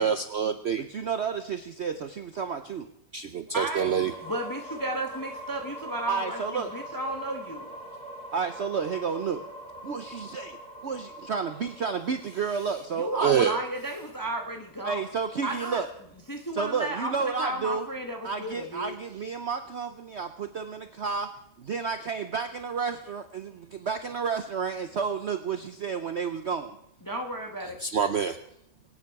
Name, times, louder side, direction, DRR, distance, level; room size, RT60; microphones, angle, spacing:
voice 1, 0.0-0.8 3.1-4.1 13.2-13.6 27.8-28.4, right 7 dB, 90° right, 8 dB, 0.5 m, -26 dB
voice 2, 0.8-2.9 6.1-6.7 8.3-9.4 9.8-10.6 10.8-13.5 14.8-15.9 16.5-17.9 18.2-21.3 21.6-26.8, right 5 dB, 55° right, 8 dB, 0.7 m, -31 dB
voice 3, 3.5-7.7 12.9-15.0 15.4-15.8 16.3-18.9 27.0-27.8, right 1 dB, 15° left, 3 dB, 1.0 m, -33 dB
sound 1, 3.7-15.5, right 1 dB, 20° right, 1.2 m, -43 dB
23.0 x 9.3 x 4.8 m, 0.77 s
omnidirectional pair, 1.9 m